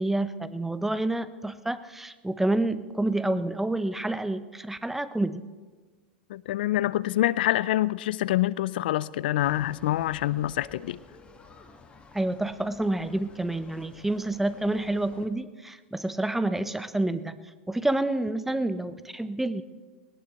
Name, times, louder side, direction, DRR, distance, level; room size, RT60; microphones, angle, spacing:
voice 1, 0.0-5.4 12.1-17.4 17.7-19.6, right 2 dB, 5° right, 13 dB, 0.7 m, -28 dB
voice 2, 6.3-11.0, left 14 dB, 65° left, 20 dB, 0.5 m, -26 dB
sound 1, 9.4-15.3, left 4 dB, 20° left, 1.6 m, -51 dB
20.0 x 18.0 x 3.0 m, 1.4 s
hypercardioid pair, 105°, 5 cm